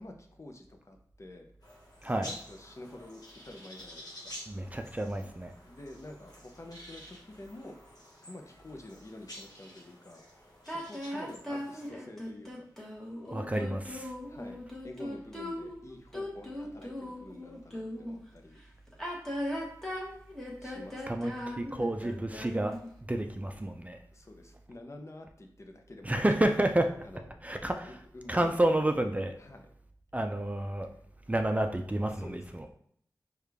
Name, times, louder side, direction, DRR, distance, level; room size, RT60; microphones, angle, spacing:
voice 1, 0.0-1.5 2.2-4.4 5.6-7.8 8.2-10.2 10.7-12.7 13.2-13.5 14.3-18.6 20.6-21.4 24.1-26.5 27.0-27.3 27.8-28.5 29.4-29.7 30.8-31.0 32.1-32.4, left 1 dB, 45° left, 3 dB, 0.6 m, -48 dB
sound 1, 1.6-11.9, equal, 75° left, 1.2 m, -50 dB
voice 2, 4.5-5.5 13.3-14.1 21.1-22.8 23.1-24.0 26.0-26.9 27.4-27.9 28.3-29.3 30.1-30.9 31.3-32.7, right 1 dB, 20° right, 5 dB, 0.4 m, -30 dB
sound 2, 10.7-18.2 18.9-22.9, left 1 dB, 5° left, 1.1 m, -38 dB
4.8 x 2.4 x 3.4 m, 0.65 s
wide cardioid pair, 55°, 7 cm